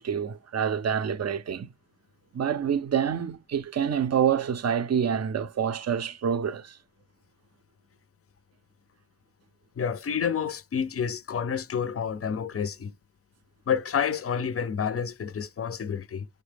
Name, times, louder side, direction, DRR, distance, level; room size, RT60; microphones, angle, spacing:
voice 1, 0.0-1.7 2.3-6.8, right 8 dB, 40° right, 0.4 m, -27 dB
voice 2, 9.8-12.9 13.7-16.3, left 7 dB, 35° left, 0.4 m, -29 dB
4.8 x 2.1 x 3.2 m
wide cardioid pair, 70°, 40 cm